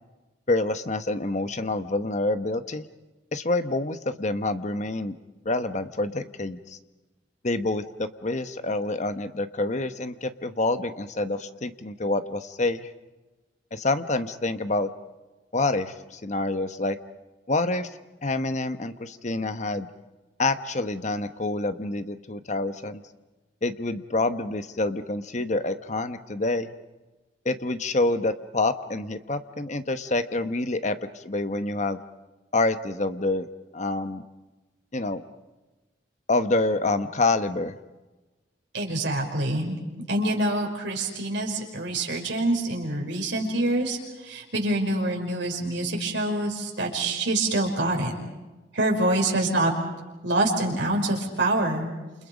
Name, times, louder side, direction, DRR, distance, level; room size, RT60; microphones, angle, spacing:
voice 1, 0.5-2.8 3.3-5.2 5.4-6.8 7.4-12.9 13.7-14.9 15.5-17.0 17.5-17.9 18.2-19.9 20.4-23.0 23.6-26.7 27.4-32.0 32.5-33.5 33.7-34.2 34.9-35.2 36.3-37.8, left 2 dB, 40° left, 10 dB, 1.1 m, -27 dB
voice 2, 38.7-39.8 40.1-44.0 44.2-48.1 48.7-49.7 50.2-51.9, right 1 dB, 90° right, 0 dB, 5.5 m, -26 dB
29.0 x 28.5 x 5.2 m, 1.1 s
head